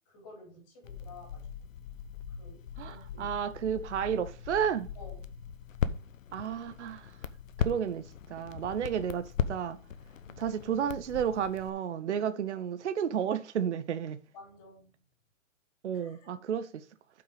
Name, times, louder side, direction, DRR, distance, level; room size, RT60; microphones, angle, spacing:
voice 1, 0.1-1.5 2.4-3.3 5.0-5.3 10.2-10.5 14.3-15.0 15.9-16.4, left 2 dB, 25° left, 4.5 m, -52 dB
Crackle, 0.8-11.7, left 7 dB, 80° left, 1.0 m, -38 dB
voice 2, 2.8-4.9 6.3-7.1 7.6-9.8 10.4-14.2 15.8-16.8, right 8 dB, 60° right, 0.8 m, -32 dB
8.8 x 5.9 x 4.8 m
hypercardioid pair, 170°, 39 cm